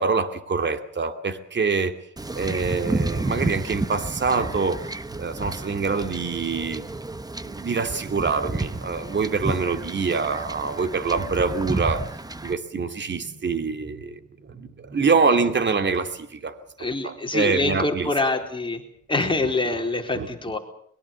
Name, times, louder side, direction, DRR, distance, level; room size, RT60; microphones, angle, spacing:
voice 1, 0.0-1.9 2.3-6.8 7.5-12.0 12.4-14.2 14.5-16.6 17.0-18.1 19.4-19.8 20.1-20.3, right 4 dB, 35° right, 8 dB, 2.5 m, -25 dB
Wind / Ocean / Boat Water vehicle, 2.2-12.5, right 2 dB, 10° right, 1.0 m, -31 dB
voice 2, 16.8-18.8 19.1-20.6, left 2 dB, 15° left, 2 dB, 4.2 m, -25 dB
23.0 x 22.0 x 7.2 m, 0.64 s
cardioid pair, 90°, 30 cm